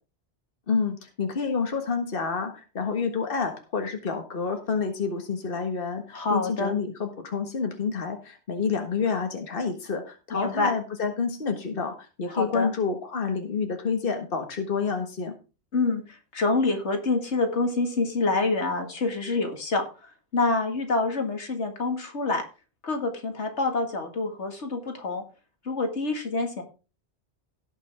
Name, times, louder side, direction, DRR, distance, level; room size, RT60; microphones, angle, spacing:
voice 1, 0.7-15.3, left 5 dB, 55° left, 4 dB, 1.7 m, -28 dB
voice 2, 6.1-6.7 10.3-10.7 12.3-12.7 15.7-19.8 20.3-22.5 22.8-25.2 25.7-26.6, left 3 dB, 85° left, 4 dB, 2.3 m, -26 dB
17.0 x 6.0 x 3.5 m, 0.32 s
omnidirectional pair, 1.1 m